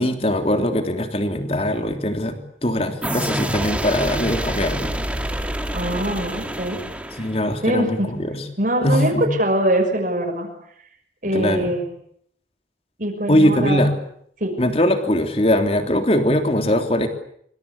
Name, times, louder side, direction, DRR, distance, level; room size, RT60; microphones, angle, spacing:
voice 1, 0.0-4.9 7.2-8.4 8.8-9.3 11.3-11.7 13.3-13.9 14.6-17.1, left 1 dB, 35° left, 6 dB, 3.3 m, -21 dB
sound 1, 3.0-7.7, right 1 dB, 5° right, 2.2 m, -27 dB
voice 2, 5.7-6.8 7.1-7.3 7.6-8.1 8.6-10.5 11.2-11.8 13.0-13.8 14.4-14.5, right 1 dB, 45° right, 1 dB, 6.3 m, -22 dB
26.0 x 25.5 x 8.5 m, 0.69 s
head